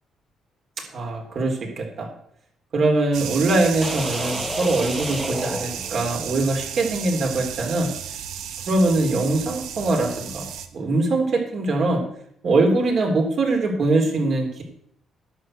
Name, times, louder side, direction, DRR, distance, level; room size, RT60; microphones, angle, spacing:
voice 1, 0.9-2.1 2.7-7.9 8.7-12.0 12.4-14.6, right 2 dB, 55° right, 2 dB, 3.3 m, -22 dB
sound 1, 3.1-10.7, right 8 dB, 85° right, 1.0 m, -33 dB
sound 2, 3.8-6.4, left 1 dB, 10° left, 0.9 m, -31 dB
11.0 x 6.1 x 7.8 m, 0.69 s
cardioid pair, 90°, 0 cm